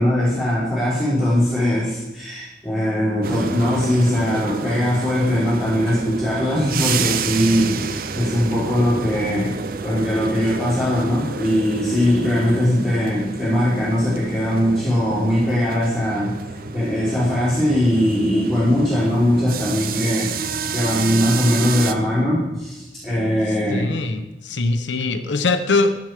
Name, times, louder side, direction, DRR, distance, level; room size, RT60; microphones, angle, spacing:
voice 1, 0.0-9.5 9.8-23.9, equal, ahead, -12 dB, 4.6 m, -20 dB
sound 1, 3.2-21.9, right 5 dB, 50° right, 0.6 m, -30 dB
voice 2, 23.7-26.0, left 3 dB, 85° left, 9 dB, 0.8 m, -22 dB
15.5 x 7.9 x 5.0 m, 1.0 s
head